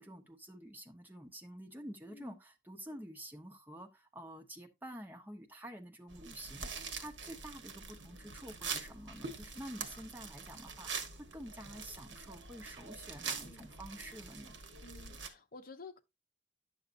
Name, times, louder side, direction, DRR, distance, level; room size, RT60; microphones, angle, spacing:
voice 1, 0.0-14.6, equal, 10° right, 1.0 m, -49 dB
sound 1, 6.1-15.3, right 5 dB, 70° right, 1.2 m, -44 dB
voice 2, 13.2-13.7 14.8-16.0, left 3 dB, 50° left, 0.8 m, -52 dB
9.5 x 6.4 x 2.6 m
head